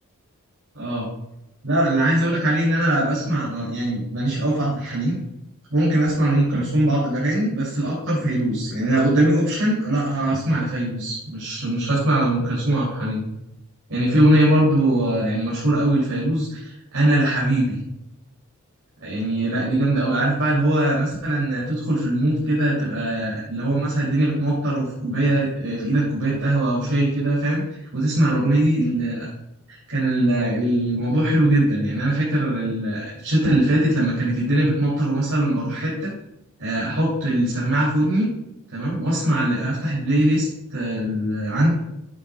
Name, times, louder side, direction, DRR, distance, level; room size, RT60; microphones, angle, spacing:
voice 1, 0.7-1.1 1.6-5.2 5.7-13.2 13.9-17.8 19.0-27.6 27.9-29.3 29.7-36.1 36.6-38.3 38.7-41.7, right 1 dB, 70° right, -7 dB, 3.1 m, -21 dB
8.6 x 8.5 x 2.4 m, 0.86 s
head